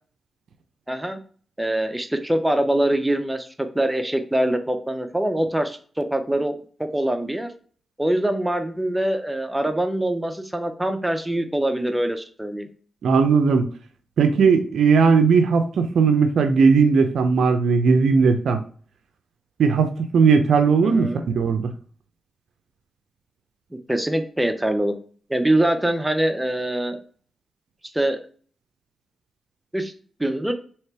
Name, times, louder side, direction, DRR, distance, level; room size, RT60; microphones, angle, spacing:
voice 1, 0.9-1.2 1.6-6.6 6.9-7.5 8.0-12.7 20.8-21.2 23.7-24.9 25.3-27.0 27.9-28.2 29.7-29.9 30.2-30.5, right 1 dB, 10° right, 7 dB, 0.7 m, -23 dB
voice 2, 13.0-13.7 14.2-18.6 19.6-21.1 21.4-21.7, right 5 dB, 75° right, 7 dB, 0.4 m, -17 dB
3.2 x 2.9 x 4.4 m, 0.44 s
supercardioid pair, 45°, 0 cm